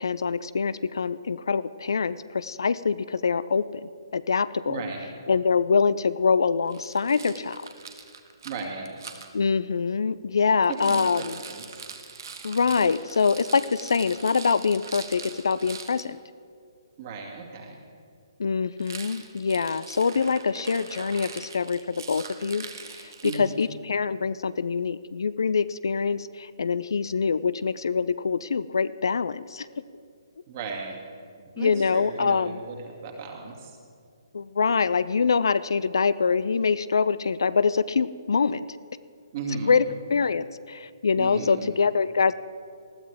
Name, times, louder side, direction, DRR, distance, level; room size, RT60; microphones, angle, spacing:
voice 1, 0.0-4.8 5.3-7.7 9.3-11.4 12.4-16.2 18.4-22.7 22.9-29.8 31.6-32.6 34.3-38.7 39.7-39.8 40.1-42.3, left 5 dB, 65° left, 16 dB, 0.4 m, -25 dB
voice 2, 4.7-5.1 8.4-8.9 10.7-11.8 17.0-17.8 23.2-23.5 30.5-31.0 31.6-33.8 39.3-39.8 41.2-41.7, right 4 dB, 35° right, 1 dB, 2.3 m, -35 dB
Rattle, 6.7-9.3 10.6-16.0 18.8-23.7, right 5 dB, 55° right, 1.3 m, -42 dB
19.5 x 13.5 x 3.5 m, 2.2 s
figure-of-eight pair, 135°, 2 cm